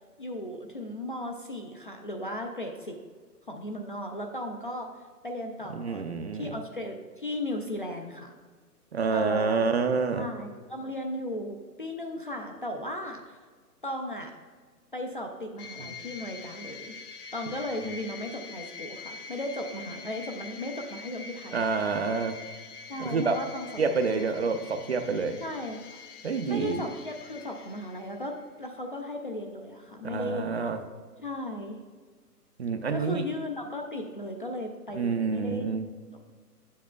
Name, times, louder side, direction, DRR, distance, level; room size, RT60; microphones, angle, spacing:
voice 1, 0.2-3.0 3.5-4.9 5.2-6.1 6.3-8.4 9.1-9.6 10.1-13.4 13.8-14.3 14.9-17.0 17.3-21.7 22.9-23.7 24.0-24.5 25.4-26.0 26.5-30.6 31.2-31.8 32.9-35.6 36.1-36.2, left 1 dB, 35° left, 3 dB, 0.4 m, -36 dB
voice 2, 5.8-6.5 8.9-10.3 15.8-15.9 17.8-17.9 21.5-22.4 23.0-23.4 23.8-25.4 26.2-26.8 30.0-30.8 32.6-33.2 34.9-35.9, right 4 dB, 45° right, 8 dB, 0.4 m, -28 dB
sound 1, 15.6-28.4, left 5 dB, 70° left, 0.8 m, -45 dB
8.9 x 7.4 x 2.3 m, 1.5 s
hypercardioid pair, 150°, 48 cm